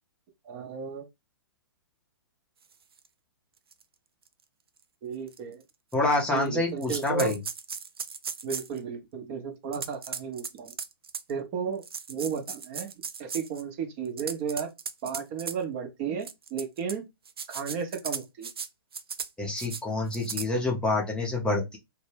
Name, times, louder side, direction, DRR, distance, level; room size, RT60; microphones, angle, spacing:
voice 1, 0.4-1.1 5.0-5.6 6.3-7.4 8.4-10.7 11.3-11.8 12.1-12.9 13.2-14.7 15.0-17.1 17.5-18.5, right 6 dB, 35° right, 0.6 m, -33 dB
sound 1, 3.0-3.1 3.7-3.8 4.3-4.4 5.3-5.4 5.9-6.5 6.8-8.8 9.7-11.3 11.8-13.6 14.1-15.6 16.2-16.9 17.3-18.7 18.9-19.3 19.6-19.8 20.1-20.5, right 6 dB, 85° right, 0.4 m, -37 dB
voice 2, 5.9-7.4 19.4-21.8, left 2 dB, 10° left, 0.6 m, -27 dB
2.1 x 2.1 x 3.2 m
hypercardioid pair, 130°, 12 cm